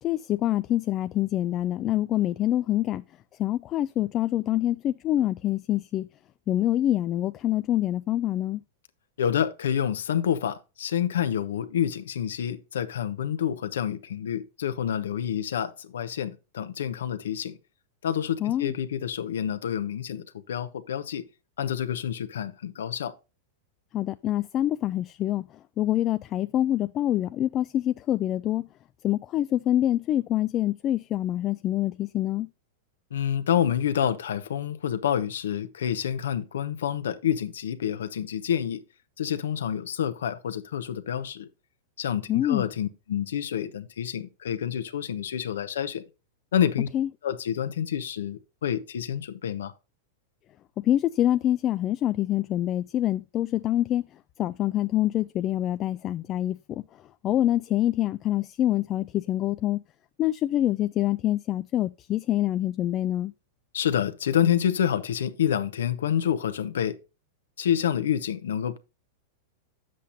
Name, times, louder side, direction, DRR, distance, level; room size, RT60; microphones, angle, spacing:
voice 1, 0.0-3.0 3.4-6.1 6.5-8.6 18.4-18.7 23.9-28.7 29.0-32.5 42.3-42.7 46.9-47.1 50.8-54.1 54.4-59.8 60.2-63.3, left 13 dB, 30° left, 0.3 m, -26 dB
voice 2, 9.2-17.6 18.0-21.2 21.6-23.1 33.1-38.8 39.2-41.5 42.0-46.0 46.5-46.9 47.2-49.7 63.7-67.0 67.6-68.8, left 9 dB, 85° left, 0.9 m, -28 dB
8.4 x 7.6 x 2.6 m
hypercardioid pair, 130°, 0 cm